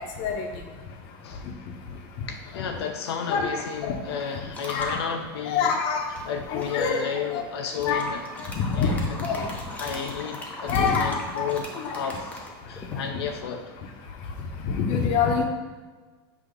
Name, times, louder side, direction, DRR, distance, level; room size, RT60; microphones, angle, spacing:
voice 1, 2.3-5.8 6.3-8.2 8.7-8.9 9.3-9.5 9.7-11.6 11.9-13.6, left 7 dB, 85° left, 4 dB, 0.6 m, -32 dB
voice 2, 3.3-3.6 3.9-4.0 4.7-5.0 5.5-6.1 6.5-7.0 7.3-7.4 7.8-8.1 8.5-9.4 10.7-11.4 11.8-11.9 14.7-15.4, left 5 dB, 45° left, 3 dB, 0.9 m, -25 dB
sound 1, 4.5-5.0 6.1-6.9 7.7-13.0, left 1 dB, 10° left, 0.8 m, -39 dB
6.1 x 2.9 x 5.3 m, 1.4 s
supercardioid pair, 150°, 13 cm